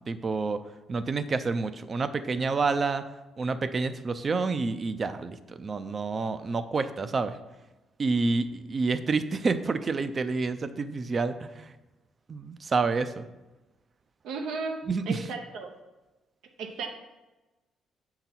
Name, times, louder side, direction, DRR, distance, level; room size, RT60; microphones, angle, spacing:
voice 1, 0.1-0.6 0.9-3.1 3.4-7.4 8.0-11.7 12.3-13.3 14.9-15.2, right 4 dB, 40° right, 11 dB, 0.4 m, -28 dB
voice 2, 14.2-15.7 16.6-16.9, right 4 dB, 85° right, 3 dB, 0.6 m, -35 dB
6.9 x 3.9 x 4.3 m, 1.1 s
cardioid pair, 90°, 0 cm